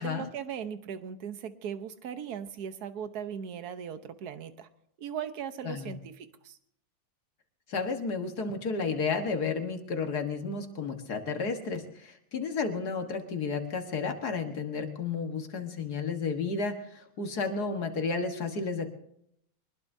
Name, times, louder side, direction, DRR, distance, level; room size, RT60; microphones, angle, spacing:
voice 1, 0.0-4.7 5.0-6.6, right 8 dB, 55° right, 10 dB, 1.3 m, -38 dB
voice 2, 5.6-6.0 7.7-18.9, left 4 dB, 50° left, 5 dB, 1.9 m, -32 dB
24.0 x 20.0 x 2.7 m, 0.73 s
omnidirectional pair, 2.3 m